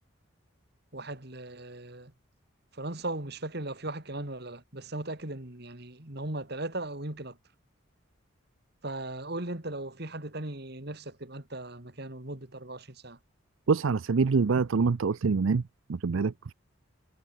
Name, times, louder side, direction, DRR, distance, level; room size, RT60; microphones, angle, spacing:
voice 1, 0.9-2.1 2.7-7.4 8.8-13.2, right 2 dB, 50° right, 2.3 m, -38 dB
voice 2, 13.7-15.6 15.9-16.5, right 4 dB, 70° right, 0.5 m, -25 dB
head